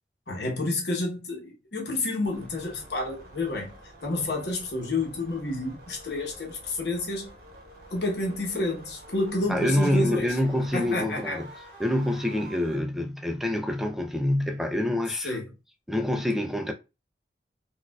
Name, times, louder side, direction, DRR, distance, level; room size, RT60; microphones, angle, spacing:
voice 1, 0.3-3.7 4.0-7.3 7.9-10.3 10.7-11.4 15.2-15.5, left 2 dB, 65° left, 1.0 m, -29 dB
sound 1, 2.2-12.8, right 1 dB, 55° right, 1.0 m, -48 dB
voice 2, 9.5-11.5 11.8-15.4 15.9-16.7, left 1 dB, ahead, 0.4 m, -26 dB
4.2 x 2.4 x 2.3 m
head